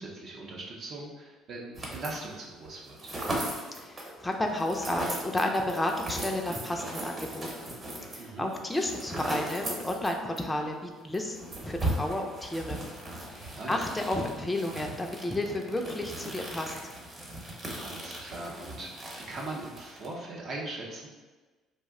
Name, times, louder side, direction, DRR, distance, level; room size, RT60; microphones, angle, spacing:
voice 1, 0.0-3.1 8.2-8.5 13.5-13.8 17.8-21.1, right 2 dB, 55° right, -2 dB, 0.6 m, -40 dB
sound 1, 1.7-2.3 2.6-10.5 10.7-10.8 11.1-20.1, right 1 dB, 35° right, 0.9 m, -38 dB
voice 2, 3.8-7.7 8.1-12.8 13.3-16.7, left 1 dB, 15° left, 2 dB, 0.3 m, -32 dB
2.6 x 2.1 x 3.5 m, 1.3 s
supercardioid pair, 90°, 0 cm